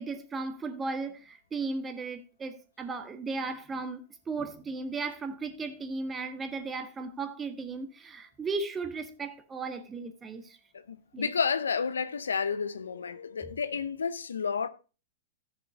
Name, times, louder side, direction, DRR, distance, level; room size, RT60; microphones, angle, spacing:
voice 1, 0.0-4.0 4.3-10.6 11.1-11.3 13.4-13.5, right 3 dB, 20° right, 1.6 m, -36 dB
voice 2, 10.9-14.7, left 6 dB, 85° left, 0.7 m, -31 dB
14.5 x 6.5 x 3.8 m
hypercardioid pair, 110°, 0 cm